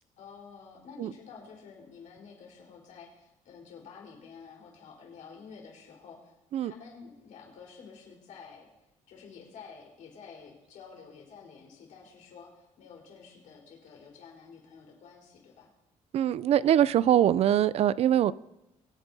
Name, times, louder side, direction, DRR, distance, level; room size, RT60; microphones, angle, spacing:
voice 1, 0.2-6.4 6.6-8.7 9.1-15.7, left 5 dB, 75° left, -2 dB, 4.2 m, -50 dB
voice 2, 16.1-18.3, right 11 dB, 50° right, 19 dB, 0.4 m, -23 dB
24.0 x 9.0 x 2.7 m, 0.93 s
cardioid pair, 140°, 13 cm